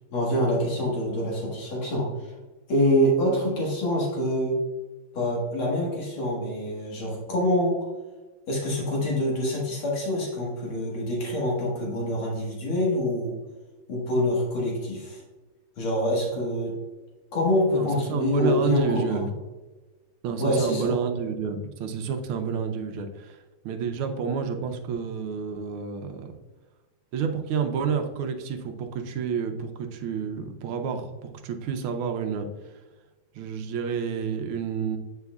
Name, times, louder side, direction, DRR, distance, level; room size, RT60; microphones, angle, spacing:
voice 1, 0.1-2.3 2.7-4.6 5.1-7.8 8.5-13.4 13.9-15.2 15.8-16.7 17.3-19.2 20.4-21.0, left 1 dB, 75° left, -3 dB, 2.5 m, -25 dB
voice 2, 17.7-19.4 20.2-23.4 23.7-26.3 27.1-32.5 33.4-35.0, right 6 dB, 80° right, 6 dB, 1.6 m, -29 dB
8.0 x 5.7 x 2.3 m, 1.2 s
omnidirectional pair, 2.3 m